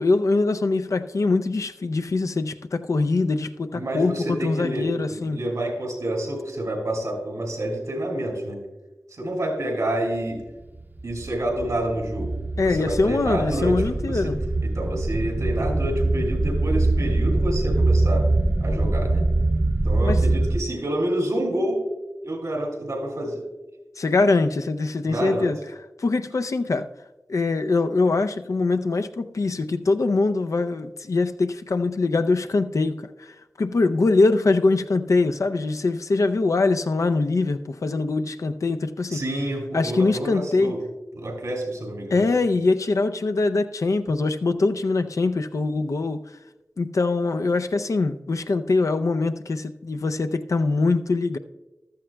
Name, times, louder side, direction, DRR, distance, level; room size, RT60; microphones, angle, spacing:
voice 1, 0.0-5.4 12.6-14.4 20.0-20.2 24.0-25.6 26.0-26.9 27.3-33.3 33.6-39.2 39.7-40.8 42.1-46.2 46.8-51.4, left 3 dB, 75° left, 0.5 m, -23 dB
voice 2, 3.7-8.6 9.1-10.4 11.0-12.3 12.6-18.3 18.6-19.3 19.8-21.8 22.2-23.4 25.1-25.5 39.1-40.8 41.1-42.3, right 1 dB, 90° right, 2.5 m, -28 dB
sound 1, 10.7-20.6, right 2 dB, 35° right, 0.6 m, -23 dB
14.5 x 12.5 x 2.3 m
cardioid pair, 45°, 5 cm